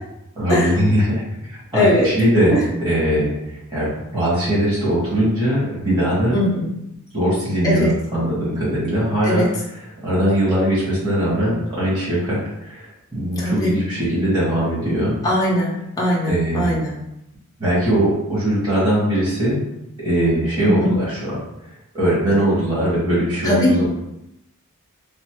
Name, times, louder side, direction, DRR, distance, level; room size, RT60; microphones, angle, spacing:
voice 1, 0.3-6.4 7.1-9.5 9.7-15.1 16.2-16.8 17.6-19.6 20.0-21.4 21.9-23.9, right 1 dB, 20° right, -11 dB, 1.4 m, -20 dB
voice 2, 1.7-2.1 6.3-6.7 7.6-7.9 9.2-9.5 13.4-13.7 15.2-16.9 20.6-20.9 23.4-23.7, left 1 dB, 15° left, -6 dB, 0.5 m, -20 dB
3.0 x 2.1 x 2.9 m, 0.85 s
head